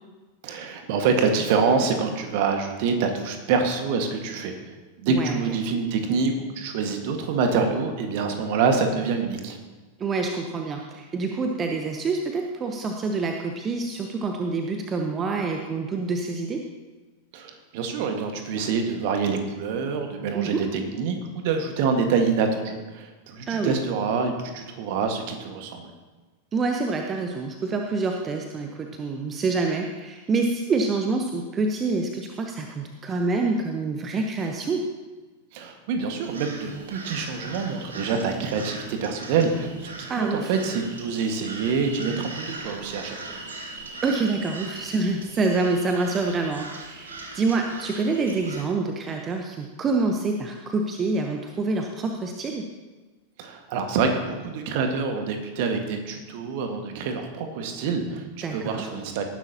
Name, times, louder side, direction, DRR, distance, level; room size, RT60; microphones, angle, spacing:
voice 1, 0.4-4.5 5.0-9.6 17.3-25.9 35.5-43.2 53.4-59.2, right 5 dB, 50° right, 5 dB, 1.7 m, -26 dB
voice 2, 5.1-5.4 10.0-16.6 20.3-20.6 23.5-23.8 26.5-34.9 40.1-40.5 44.0-52.6 58.4-58.9, right 3 dB, 25° right, 3 dB, 0.9 m, -26 dB
sound 1, 36.2-48.6, right 2 dB, 70° right, 1.6 m, -40 dB
18.5 x 10.5 x 2.9 m, 1.3 s
figure-of-eight pair, 90°, 0 cm